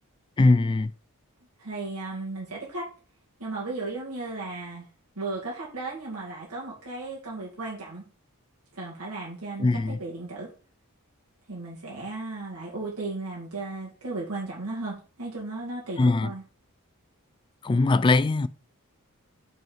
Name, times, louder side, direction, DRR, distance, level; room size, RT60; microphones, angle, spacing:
voice 1, 0.4-0.9 9.6-10.0 16.0-16.3 17.6-18.5, left 3 dB, 20° left, 0.3 m, -21 dB
voice 2, 1.6-2.9 3.4-4.9 5.2-8.0 8.7-10.5 11.5-16.4, right 3 dB, 70° right, 2.2 m, -35 dB
5.4 x 4.6 x 5.6 m
head